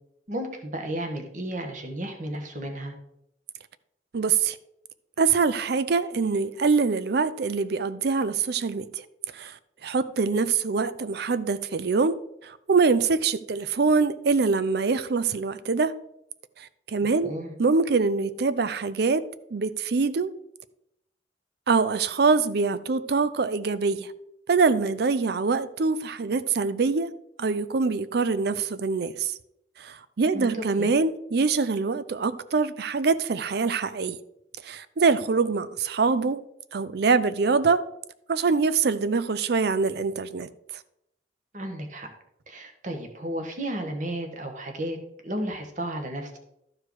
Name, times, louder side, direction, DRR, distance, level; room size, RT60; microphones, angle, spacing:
voice 1, 0.3-2.9 17.2-17.5 30.3-30.5 30.8-30.9 41.5-42.1 42.5-45.0 45.2-46.4, right 1 dB, 45° right, 1.4 m, -33 dB
voice 2, 4.1-4.6 5.2-9.0 9.3-12.2 12.4-15.9 16.6-17.3 17.6-19.2 19.5-20.3 21.7-24.1 24.5-27.1 27.4-29.3 29.8-34.2 34.6-36.4 36.7-37.8 38.3-40.5, right 4 dB, 60° right, 0.5 m, -24 dB
12.5 x 4.8 x 4.7 m
head